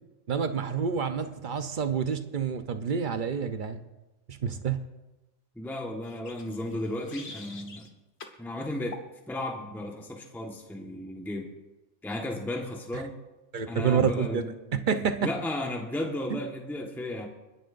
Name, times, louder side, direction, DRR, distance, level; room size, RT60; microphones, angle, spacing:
voice 1, 0.3-3.8 4.3-4.8 12.9-13.0 13.5-14.4 14.9-15.2 16.3-16.4, right 6 dB, 45° right, 8 dB, 0.8 m, -28 dB
voice 2, 5.6-7.9 8.4-9.0 9.3-11.5 12.0-13.1 13.7-14.5 15.2-17.3, left 1 dB, ahead, 1 dB, 1.2 m, -34 dB
sound 1, 6.0-7.9 8.2-8.4 8.9-9.1, left 4 dB, 50° left, 1.4 m, -46 dB
29.5 x 10.5 x 2.6 m, 1.0 s
omnidirectional pair, 1.4 m